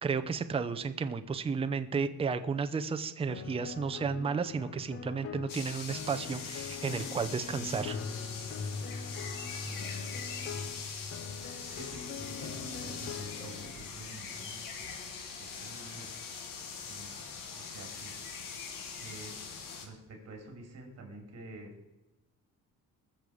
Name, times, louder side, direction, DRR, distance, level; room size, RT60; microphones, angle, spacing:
voice 1, 0.0-8.0, right 5 dB, 15° right, 9 dB, 0.6 m, -33 dB
sound 1, 3.3-13.7, left 5 dB, 40° left, 0.8 m, -42 dB
sound 2, 5.5-19.9, left 6 dB, 75° left, 2.1 m, -42 dB
voice 2, 9.4-10.2 10.6-11.0 11.3-14.6 15.4-16.1 16.8-17.1 17.5-18.1 19.0-19.4 19.8-21.7, right 2 dB, 50° right, 3 dB, 3.4 m, -49 dB
sound 3, 11.3-17.1, left 2 dB, 20° left, 1.0 m, -56 dB
20.5 x 7.0 x 5.0 m, 0.99 s
cardioid pair, 150°, 33 cm